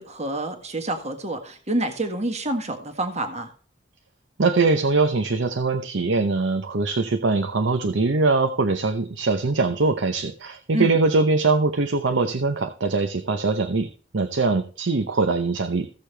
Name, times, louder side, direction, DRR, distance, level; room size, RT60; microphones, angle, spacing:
voice 1, 0.0-3.5 10.7-11.0, right 1 dB, 35° right, 5 dB, 1.6 m, -28 dB
voice 2, 4.4-13.9 14.1-15.9, right 3 dB, 75° right, 7 dB, 0.8 m, -22 dB
15.5 x 6.8 x 3.4 m, 0.41 s
head